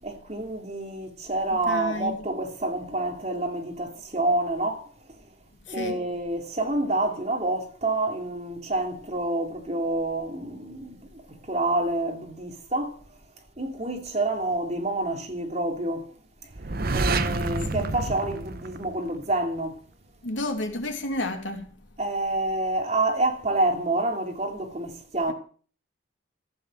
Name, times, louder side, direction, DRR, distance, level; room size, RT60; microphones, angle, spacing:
voice 1, 0.0-4.9 5.7-13.0 13.6-16.1 16.9-19.8 22.0-25.3, right 2 dB, 35° right, 2.9 m, -28 dB
voice 2, 1.5-2.2 5.7-6.1 17.7-18.0 20.2-21.7, left 1 dB, 75° left, 3.1 m, -31 dB
sound 1, 16.5-19.4, right 3 dB, 50° right, 1.0 m, -28 dB
14.5 x 8.9 x 7.7 m
head